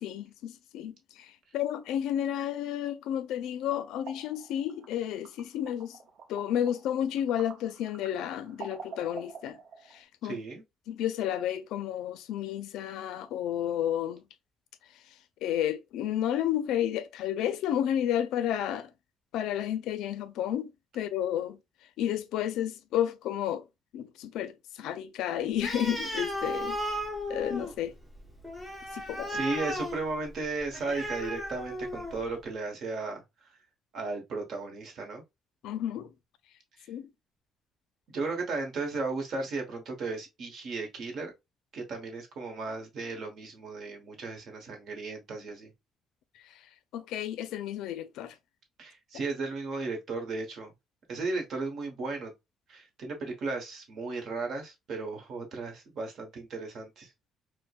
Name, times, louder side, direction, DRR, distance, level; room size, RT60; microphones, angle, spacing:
voice 1, 0.0-6.0 6.3-9.6 9.9-10.4 10.9-14.2 15.4-18.9 19.3-21.6 22.0-23.6 23.9-26.8 27.3-27.9 28.9-29.4 35.6-36.1 36.9-37.1 46.9-48.3, left 10 dB, 90° left, 0.4 m, -31 dB
sound 1, 3.4-10.0, right 5 dB, 75° right, 0.6 m, -48 dB
voice 2, 10.2-10.6 28.9-33.5 33.9-35.2 36.8-36.9 38.1-41.3 41.7-45.7 48.8-50.7 51.1-52.3 52.7-57.1, right 3 dB, 50° right, 1.1 m, -35 dB
Animal, 25.6-32.3, equal, ahead, 0.6 m, -35 dB
4.5 x 2.1 x 2.3 m
cardioid pair, 165°, 0 cm